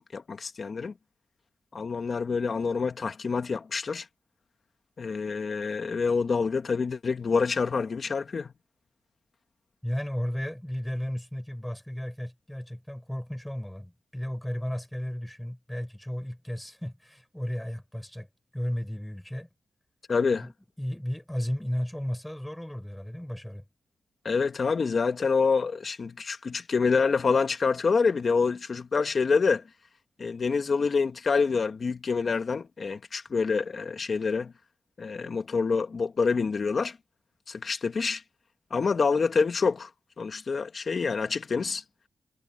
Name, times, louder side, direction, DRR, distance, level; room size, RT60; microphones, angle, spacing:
voice 1, 0.1-0.9 1.7-4.1 5.0-8.5 20.1-20.5 24.3-29.6 30.2-34.5 35.0-37.0 37.5-38.2 38.7-39.9 40.2-41.8, left 5 dB, 55° left, 1.9 m, -27 dB
voice 2, 9.8-18.3 18.5-19.5 20.2-23.6, equal, 5° left, 5.4 m, -34 dB
cardioid pair, 75°, 0 cm